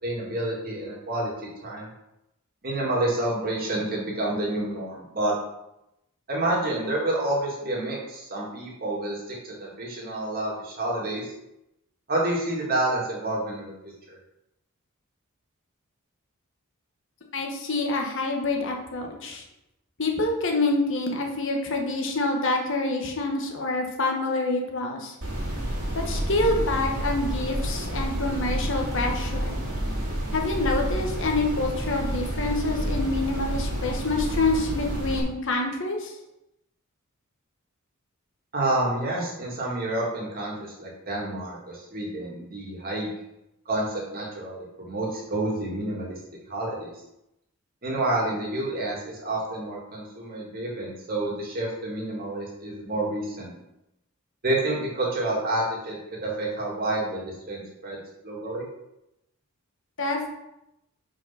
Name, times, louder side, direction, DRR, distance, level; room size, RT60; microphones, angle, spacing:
voice 1, 0.0-1.9 2.6-5.3 6.3-11.2 12.1-14.2 38.5-43.1 43.7-46.2 46.5-46.9 47.8-53.5 54.4-58.0 58.2-58.6, right 1 dB, 40° right, -3 dB, 2.0 m, -29 dB
voice 2, 17.3-19.4 20.0-25.1 25.9-29.6 30.3-36.1 60.0-60.3, left 2 dB, 60° left, 2 dB, 1.2 m, -27 dB
sound 1, 25.2-35.2, right 1 dB, 70° right, 2.2 m, -29 dB
5.9 x 4.7 x 5.7 m, 0.88 s
head